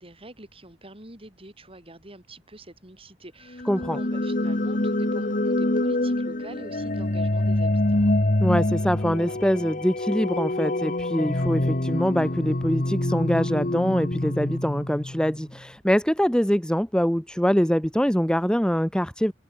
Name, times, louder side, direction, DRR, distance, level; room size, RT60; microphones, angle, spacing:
voice 1, 0.0-8.2, right 1 dB, 30° right, 5.3 m, -45 dB
sound 1, 3.5-15.4, left 1 dB, 45° left, 1.6 m, -26 dB
voice 2, 3.7-4.0 8.4-19.3, equal, 5° left, 1.9 m, -24 dB
head